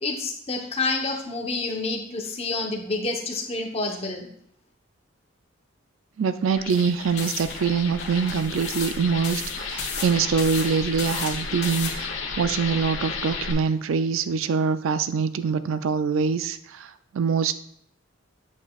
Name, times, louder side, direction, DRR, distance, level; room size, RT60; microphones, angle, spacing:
voice 1, 0.0-4.3, left 3 dB, 30° left, 2 dB, 0.9 m, -28 dB
voice 2, 6.2-17.6, right 5 dB, 80° right, 12 dB, 0.4 m, -24 dB
sound 1, 6.4-13.5, left 4 dB, 75° left, 1.0 m, -33 dB
sound 2, 6.7-11.9, left 5 dB, 55° left, 1.4 m, -35 dB
8.3 x 7.2 x 2.4 m, 0.65 s
head